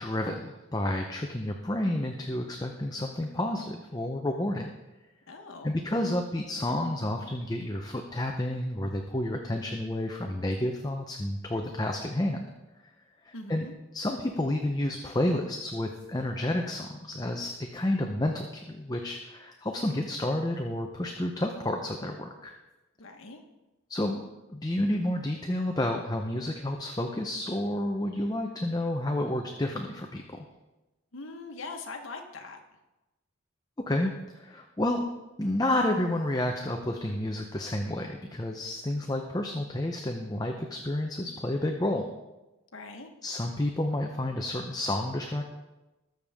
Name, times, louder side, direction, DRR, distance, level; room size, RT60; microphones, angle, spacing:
voice 1, 0.0-4.7 5.6-12.4 13.2-13.7 13.9-22.5 23.9-24.2 24.5-30.2 33.9-35.1 35.4-42.0 43.2-45.4, left 1 dB, 20° left, 3 dB, 0.7 m, -30 dB
voice 2, 5.3-5.7 13.3-13.7 23.0-23.4 31.1-32.6 42.7-43.1, left 3 dB, 75° left, 4 dB, 1.3 m, -42 dB
20.5 x 6.9 x 3.6 m, 1.0 s
head